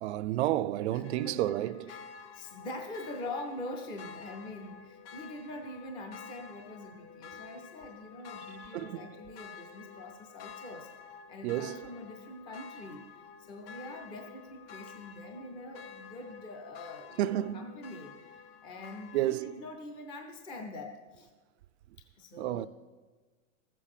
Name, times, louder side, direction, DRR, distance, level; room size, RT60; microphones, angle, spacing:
voice 1, 0.0-1.9 8.7-9.1 11.4-11.9 17.2-17.8 19.1-19.7 22.4-22.7, right 14 dB, 55° right, 0.5 m, -31 dB
voice 2, 0.9-10.9 11.3-13.1 13.4-21.3 22.0-22.7, left 1 dB, 10° left, 0.5 m, -44 dB
sound 1, 1.0-19.8, left 6 dB, 45° left, 0.8 m, -50 dB
14.5 x 7.6 x 6.6 m
supercardioid pair, 155°, 41 cm